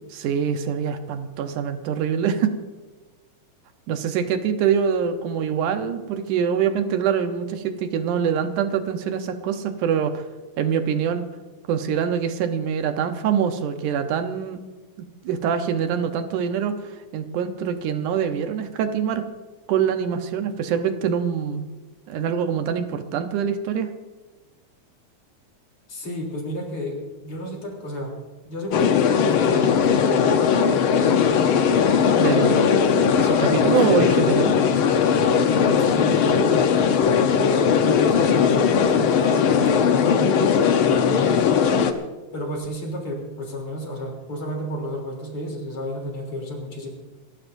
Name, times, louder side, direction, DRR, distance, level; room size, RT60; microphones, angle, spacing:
voice 1, 0.1-2.6 3.9-10.2 10.6-11.2 11.7-14.6 15.2-19.3 19.7-21.6 22.1-23.9 32.2-32.7 33.2-34.5, right 7 dB, 85° right, 7 dB, 2.5 m, -24 dB
voice 2, 25.9-27.0 27.2-28.2 28.5-30.3 33.6-34.9 35.6-36.7 37.8-41.5 42.3-46.9, equal, 45° left, 0 dB, 4.3 m, -32 dB
sound 1, 28.7-41.9, left 7 dB, 65° left, 1.3 m, -19 dB
28.5 x 13.5 x 2.7 m, 1.3 s
omnidirectional pair, 3.5 m